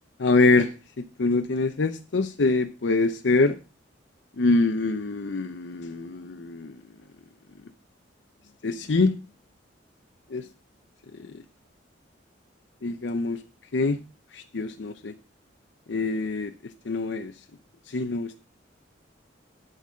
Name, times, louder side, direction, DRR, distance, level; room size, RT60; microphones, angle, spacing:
voice 1, 0.2-0.7 1.0-3.6 4.4-6.7 8.6-9.2 10.3-10.4 12.8-13.4 13.7-14.0 14.5-15.1 15.9-16.5 16.9-17.3 17.9-18.3, left 3 dB, 70° left, 8 dB, 0.7 m, -24 dB
12.0 x 4.1 x 6.2 m, 0.33 s
head